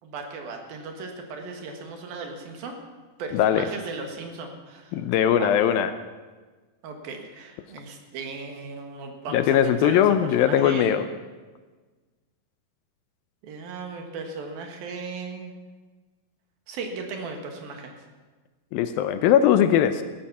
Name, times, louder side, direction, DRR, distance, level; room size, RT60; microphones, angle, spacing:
voice 1, 0.0-2.8 3.2-5.0 5.4-5.6 6.8-10.9 13.4-15.5 16.7-18.0, right 4 dB, 70° right, 4 dB, 3.4 m, -37 dB
voice 2, 3.3-3.6 4.9-5.9 9.3-11.0 18.7-20.0, left 10 dB, 80° left, 11 dB, 2.4 m, -20 dB
16.5 x 13.0 x 6.1 m, 1.3 s
omnidirectional pair, 4.5 m